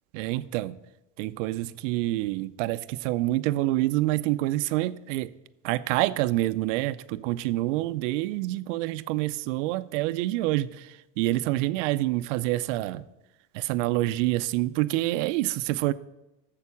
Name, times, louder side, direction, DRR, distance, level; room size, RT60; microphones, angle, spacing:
voice 1, 0.1-0.8 1.2-5.3 5.6-13.0 13.5-15.9, right 17 dB, 80° right, 0.5 m, -27 dB
7.2 x 6.8 x 7.0 m
cardioid pair, 165°, 37 cm